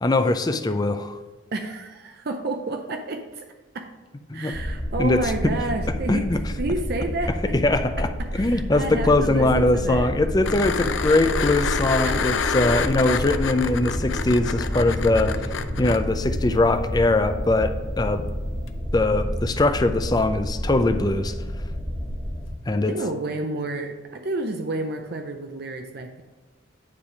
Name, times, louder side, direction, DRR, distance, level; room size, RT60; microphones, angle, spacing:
voice 1, 0.0-1.2 4.3-4.5 5.0-5.2 6.1-6.4 7.5-15.4 15.8-18.2 18.9-21.3 22.7-22.9, left 2 dB, 20° left, 8 dB, 0.4 m, -21 dB
voice 2, 1.5-3.4 3.7-3.9 4.3-7.6 8.3-10.2 10.5-10.6 10.9-11.1 12.0-12.4 22.8-26.2, right 2 dB, 55° right, 5 dB, 0.6 m, -30 dB
sound 1, 4.5-22.5, equal, 5° right, 1.2 m, -30 dB
sound 2, 10.4-16.0 18.7-18.8, left 6 dB, 90° left, 0.5 m, -27 dB
9.6 x 3.4 x 5.8 m, 1.3 s
head